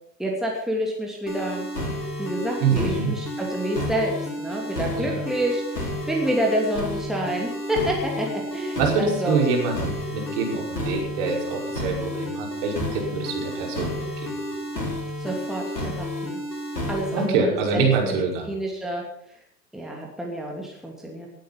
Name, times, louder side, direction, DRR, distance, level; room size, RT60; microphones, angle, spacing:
voice 1, 0.2-1.7 2.2-8.3 8.5-9.4 15.2-16.4 16.9-19.0 19.7-21.3, right 1 dB, ahead, -1 dB, 2.6 m, -28 dB
sound 1, 1.3-17.3, left 1 dB, 75° left, 4.3 m, -31 dB
voice 2, 2.6-3.1 4.9-5.2 8.8-14.3 17.1-18.5, right 5 dB, 45° right, -1 dB, 5.5 m, -25 dB
19.0 x 9.1 x 5.8 m, 0.71 s
figure-of-eight pair, 90°, 50 cm